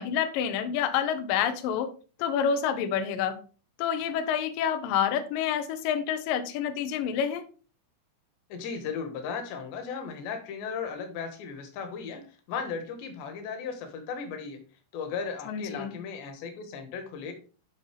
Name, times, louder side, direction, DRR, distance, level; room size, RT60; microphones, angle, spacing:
voice 1, 0.0-1.9 2.2-3.4 3.8-7.4 15.5-15.9, left 8 dB, 90° left, 8 dB, 1.9 m, -28 dB
voice 2, 8.5-14.6 14.9-17.3, left 6 dB, 70° left, 6 dB, 3.5 m, -36 dB
11.5 x 5.4 x 3.4 m, 0.37 s
omnidirectional pair, 5.5 m